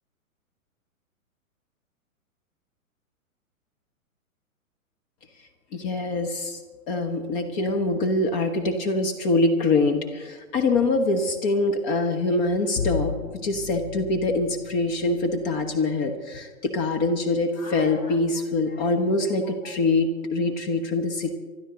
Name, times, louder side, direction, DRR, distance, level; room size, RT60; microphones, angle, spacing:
voice 1, 5.7-6.6 6.9-13.1 13.4-21.3, left 2 dB, 30° left, 4 dB, 1.3 m, -24 dB
Bowed string instrument, 12.8-15.8, left 5 dB, 55° left, 1.2 m, -34 dB
26.0 x 12.5 x 4.0 m, 1.4 s
figure-of-eight pair, 110°, 42 cm